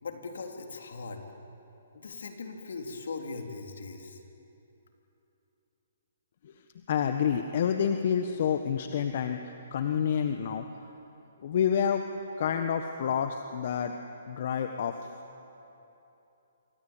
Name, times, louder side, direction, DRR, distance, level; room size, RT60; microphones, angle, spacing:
voice 1, 0.0-1.2 1.9-4.2, left 4 dB, 75° left, 3 dB, 3.6 m, -39 dB
voice 2, 6.9-10.6 11.4-12.0 12.4-13.9 14.3-15.1, left 8 dB, 55° left, 6 dB, 1.4 m, -28 dB
27.5 x 24.5 x 8.9 m, 3.0 s
hypercardioid pair, 140°, 0 cm